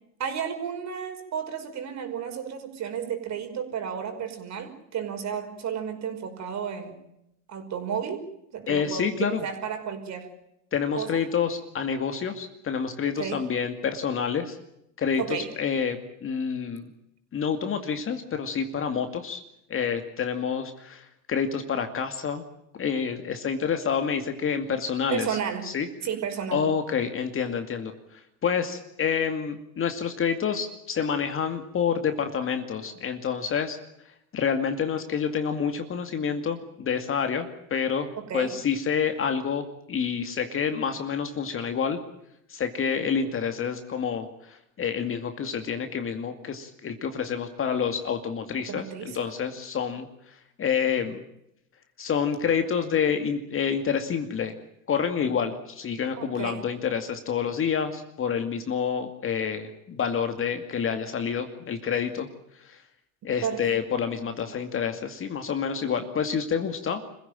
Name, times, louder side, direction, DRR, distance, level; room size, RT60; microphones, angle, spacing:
voice 1, 0.2-7.0 7.5-8.2 8.5-9.1 9.4-10.3 11.0-11.2 13.2-13.4 15.2-15.5 25.1-25.7 26.0-26.6 38.2-38.5 48.7-49.2 56.2-56.6 63.4-63.6, right 7 dB, 35° right, 6 dB, 5.5 m, -32 dB
voice 2, 8.7-9.4 10.7-14.6 15.0-16.9 17.3-19.4 19.7-22.4 22.8-25.4 25.6-25.9 26.5-33.8 34.3-42.0 42.5-50.1 50.6-51.2 52.0-54.5 54.9-62.3 62.6-62.8 63.2-67.0, left 7 dB, 25° left, 7 dB, 2.3 m, -28 dB
26.5 x 16.0 x 9.0 m, 0.81 s
hypercardioid pair, 110°, 46 cm